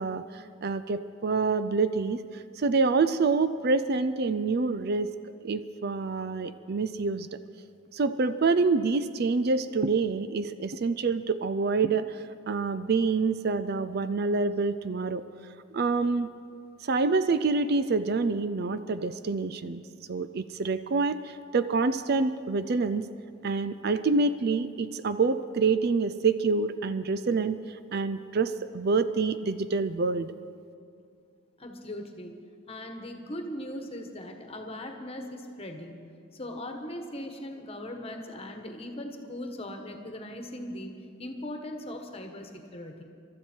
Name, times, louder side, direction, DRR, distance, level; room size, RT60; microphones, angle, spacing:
voice 1, 0.0-5.1 5.4-7.3 7.9-15.2 15.7-16.3 16.8-19.8 20.1-23.1 23.4-30.3, right 4 dB, 50° right, 12 dB, 0.4 m, -27 dB
voice 2, 31.6-32.3 32.7-40.9 41.2-43.0, left 1 dB, 30° left, 4 dB, 1.4 m, -39 dB
24.0 x 13.0 x 4.5 m, 2.4 s
head